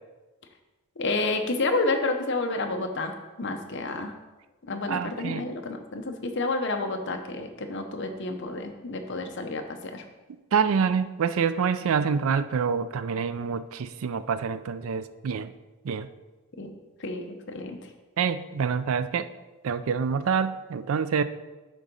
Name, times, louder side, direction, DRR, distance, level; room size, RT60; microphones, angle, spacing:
voice 1, 1.0-4.1 4.7-10.0 16.6-16.7 17.0-17.9, left 2 dB, 55° left, 0.8 m, -30 dB
voice 2, 4.9-5.5 10.5-15.5 15.8-16.1 18.2-19.3 19.6-21.2, right 6 dB, 70° right, 0.4 m, -26 dB
8.9 x 3.8 x 5.3 m
head